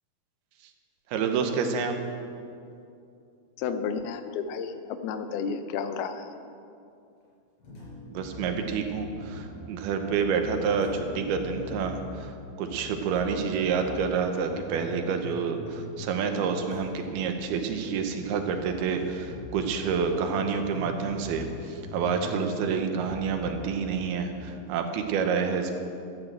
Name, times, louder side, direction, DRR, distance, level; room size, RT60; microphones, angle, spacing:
voice 1, 1.1-2.0 8.1-12.3 12.6-25.7, right 6 dB, 80° right, 5 dB, 3.0 m, -28 dB
voice 2, 3.6-6.3, left 6 dB, 80° left, 9 dB, 2.7 m, -32 dB
sound 1, 7.6-24.5, left 1 dB, 60° left, 5.8 m, -42 dB
13.5 x 9.9 x 7.4 m, 2.6 s
omnidirectional pair, 4.5 m